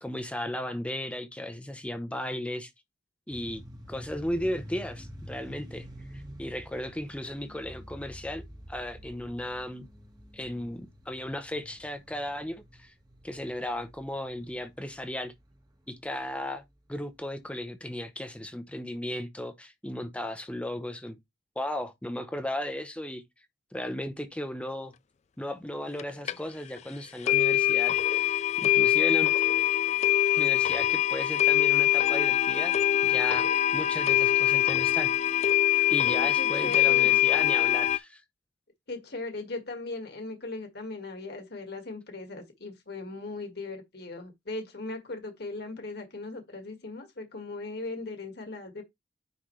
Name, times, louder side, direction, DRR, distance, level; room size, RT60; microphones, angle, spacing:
voice 1, 0.0-2.7 3.3-3.6 3.9-5.9 6.1-8.4 8.7-9.9 10.3-12.9 13.2-15.3 15.9-16.6 16.9-21.2 21.6-23.2 23.7-24.9 25.4-29.3 30.4-32.7 33.0-35.1 35.9-38.2, left 1 dB, 5° left, 0.8 m, -35 dB
sound 1, 3.3-16.4, equal, 20° right, 1.6 m, -48 dB
sound 2, 26.0-26.1 26.3-26.4 26.8-26.9 27.3-38.0, left 12 dB, 35° left, 0.4 m, -23 dB
voice 2, 36.1-37.2 38.9-48.8, left 3 dB, 60° left, 1.8 m, -38 dB
9.9 x 4.0 x 3.2 m
head